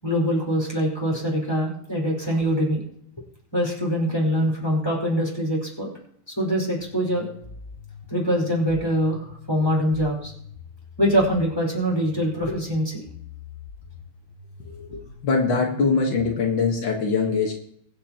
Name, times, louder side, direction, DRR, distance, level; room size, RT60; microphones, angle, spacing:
voice 1, 0.0-2.8 3.5-5.9 6.3-7.3 8.1-10.3 11.0-13.0, equal, 5° left, -3 dB, 4.3 m, -23 dB
sound 1, 6.8-16.8, left 3 dB, 25° left, 4.3 m, -44 dB
voice 2, 14.6-17.5, left 4 dB, 85° left, 1 dB, 1.0 m, -23 dB
23.5 x 8.4 x 3.0 m, 0.70 s
omnidirectional pair, 4.5 m